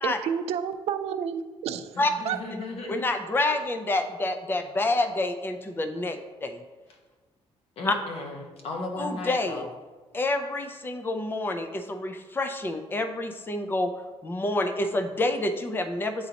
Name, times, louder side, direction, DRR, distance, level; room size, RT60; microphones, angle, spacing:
voice 1, 0.0-2.0 2.3-2.4, right 8 dB, 85° right, 9 dB, 0.4 m, -30 dB
voice 2, 2.0-3.0 7.8-9.7, left 2 dB, 70° left, 1 dB, 1.1 m, -36 dB
voice 3, 2.9-6.6 7.8-8.0 9.0-9.7 10.1-13.9 14.2-16.3, left 2 dB, 20° left, 7 dB, 0.5 m, -28 dB
9.3 x 4.0 x 2.9 m, 1.3 s
cardioid pair, 135°, 10 cm